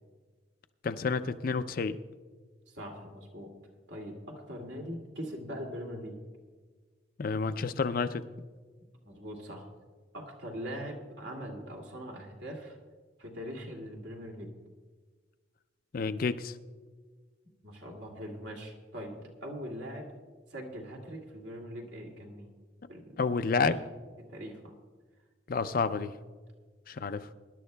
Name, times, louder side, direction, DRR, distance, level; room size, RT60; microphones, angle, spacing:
voice 1, 0.8-2.0 7.2-8.2 15.9-16.5 23.2-23.8 25.5-26.1 26.9-27.3, left 4 dB, 45° left, 11 dB, 0.4 m, -29 dB
voice 2, 2.7-3.5 3.9-6.2 9.0-9.7 10.1-12.8 13.2-14.5 17.6-20.1 20.5-22.5 22.9-23.2 23.6-23.8 24.3-24.7, equal, 65° right, 0 dB, 2.3 m, -41 dB
24.0 x 11.5 x 2.2 m, 1.5 s
head